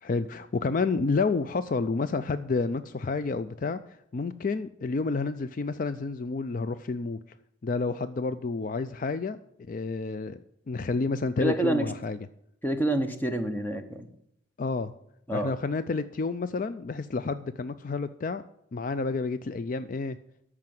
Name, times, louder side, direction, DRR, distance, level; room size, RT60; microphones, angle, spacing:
voice 1, 0.0-3.8 4.1-7.2 7.6-9.4 9.7-12.2 14.6-14.9 15.3-18.4 18.7-20.2, left 4 dB, 45° left, 13 dB, 0.4 m, -30 dB
voice 2, 11.4-11.8 12.6-14.1 15.3-15.5, right 1 dB, 10° left, 7 dB, 0.9 m, -27 dB
13.0 x 4.9 x 7.7 m, 0.77 s
head